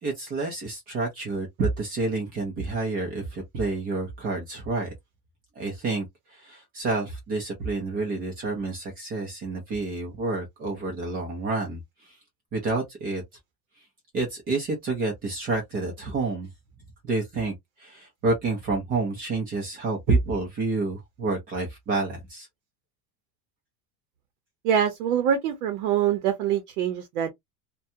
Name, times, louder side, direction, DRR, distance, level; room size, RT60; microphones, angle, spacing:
voice 1, 0.0-4.9 5.6-12.2 12.5-13.2 14.1-16.5 17.0-22.5, right 3 dB, 20° right, 0.6 m, -29 dB
voice 2, 24.6-27.3, right 9 dB, 60° right, 0.8 m, -24 dB
2.6 x 2.2 x 2.6 m
supercardioid pair, 175°, 46 cm